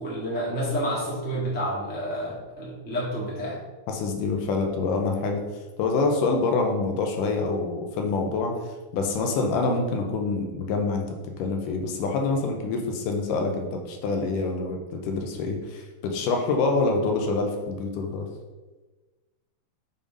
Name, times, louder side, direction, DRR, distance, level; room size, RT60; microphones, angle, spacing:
voice 1, 0.0-3.6, equal, 5° left, -6 dB, 1.0 m, -29 dB
voice 2, 3.9-5.4 5.8-11.0 11.4-18.3, left 3 dB, 80° left, 3 dB, 2.3 m, -26 dB
7.0 x 3.6 x 5.2 m, 1.2 s
omnidirectional pair, 3.9 m